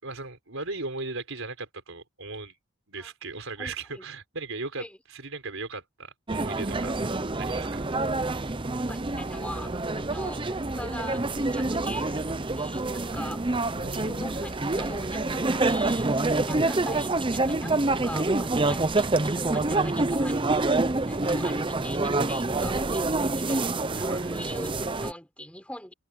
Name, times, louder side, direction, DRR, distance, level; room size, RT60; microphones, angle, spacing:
voice 1, 0.0-2.6 2.9-7.0 7.4-8.0 13.8-14.3 24.0-24.3, right 3 dB, 65° right, 5.3 m, -37 dB
voice 2, 3.6-4.1 4.8-5.0 7.0-7.1 8.7-13.5 13.8-20.6 21.0-23.8 24.3-25.9, left 1 dB, 5° left, 5.7 m, -42 dB
sound 1, 6.3-25.1, right 2 dB, 20° right, 0.7 m, -27 dB
head